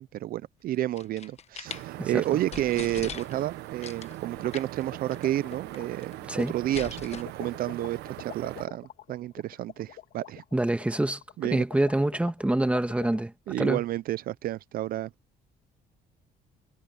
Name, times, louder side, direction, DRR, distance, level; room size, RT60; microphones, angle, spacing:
voice 1, 0.0-10.4 11.4-11.6 13.5-15.1, right 14 dB, 60° right, 0.5 m, -31 dB
sound 1, 0.7-1.8 2.3-2.4 2.5-3.5 3.8-4.2 4.5-4.8 5.1-5.2 5.5-6.1 6.4-7.2, left 8 dB, 40° left, 1.1 m, -40 dB
sound 2, 1.6-8.7, right 16 dB, 85° right, 1.0 m, -41 dB
sound 3, 4.1-13.2, left 12 dB, 70° left, 2.2 m, -46 dB
voice 2, 10.5-11.2 11.5-13.8, right 1 dB, 5° right, 1.9 m, -26 dB
cardioid pair, 110°, 17 cm